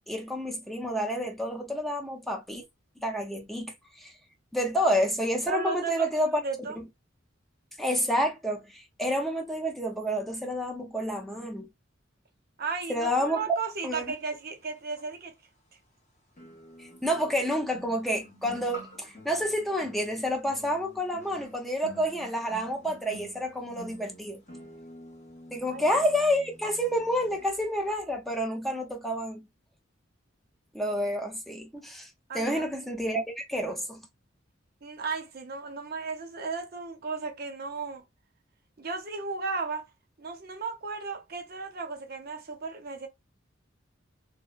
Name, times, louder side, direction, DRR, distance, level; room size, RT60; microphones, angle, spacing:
voice 1, 0.1-2.6 3.0-4.1 4.5-6.4 6.8-6.9 7.8-11.7 12.9-13.4 13.8-14.1 16.8-24.4 25.5-29.5 30.7-32.1 32.3-34.0, equal, ahead, 0.5 m, -29 dB
voice 2, 5.5-6.1 6.4-6.8 12.6-15.3 25.7-25.9 32.3-32.9 34.8-38.0 38.8-39.9 40.2-43.1, right 4 dB, 50° right, 0.7 m, -35 dB
sound 1, 15.0-15.1 16.4-27.5 27.7-28.0, equal, 35° left, 0.9 m, -49 dB
2.9 x 2.0 x 2.4 m
head